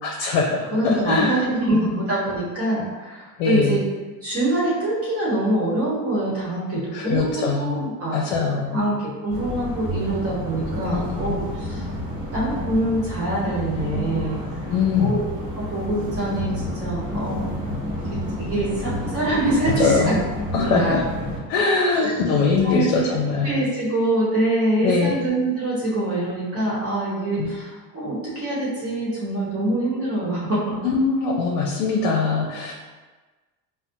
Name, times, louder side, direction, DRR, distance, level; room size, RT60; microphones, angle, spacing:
voice 1, 0.0-2.0 3.4-3.8 6.9-7.8 8.1-8.8 10.6-11.4 14.7-15.2 19.8-20.2 20.5-21.0 21.5-23.6 24.8-25.1 27.4-27.5 30.8-32.7, left 4 dB, 75° left, -1 dB, 0.7 m, -22 dB
voice 2, 0.7-3.8 4.2-8.1 8.7-11.9 12.3-14.4 15.0-15.2 15.5-17.5 18.4-20.1 20.5-21.0 22.0-22.3 22.6-23.1 23.4-30.8, right 1 dB, 30° right, -7 dB, 1.0 m, -24 dB
sound 1, 9.3-21.4, left 1 dB, 10° right, 1.5 m, -30 dB
4.1 x 2.1 x 2.6 m, 1.3 s
supercardioid pair, 90°, 48 cm